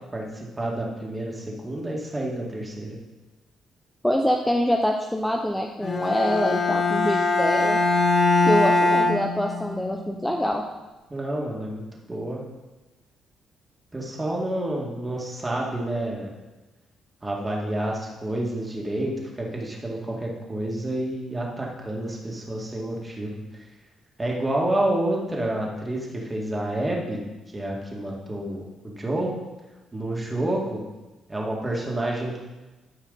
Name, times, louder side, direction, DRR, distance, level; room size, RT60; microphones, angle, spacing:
voice 1, 0.1-3.0 11.1-12.5 13.9-16.3 17.2-23.4 24.2-27.2 27.5-29.3 29.9-30.8 31.3-32.4, right 1 dB, 20° right, -2 dB, 2.1 m, -29 dB
voice 2, 4.0-7.8 8.5-10.6, equal, 5° left, 2 dB, 0.7 m, -25 dB
Bowed string instrument, 5.8-9.9, left 2 dB, 45° left, 1.7 m, -22 dB
13.0 x 5.0 x 4.1 m, 1.1 s
cardioid pair, 90°, 0 cm